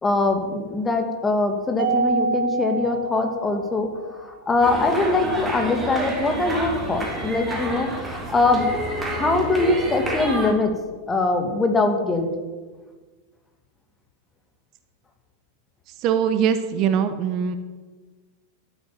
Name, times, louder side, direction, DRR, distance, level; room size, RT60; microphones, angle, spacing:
voice 1, 0.0-3.9 4.2-8.7 9.0-10.7 11.1-12.3, left 3 dB, 15° left, 5 dB, 2.4 m, -22 dB
Mallet percussion, 1.8-4.2, right 4 dB, 60° right, 2.0 m, -26 dB
sound 1, 4.6-10.5, right 1 dB, 10° right, 3.8 m, -29 dB
voice 2, 16.0-17.6, right 8 dB, 40° right, 10 dB, 1.0 m, -22 dB
13.0 x 9.2 x 9.2 m, 1.3 s
figure-of-eight pair, 90°, 0 cm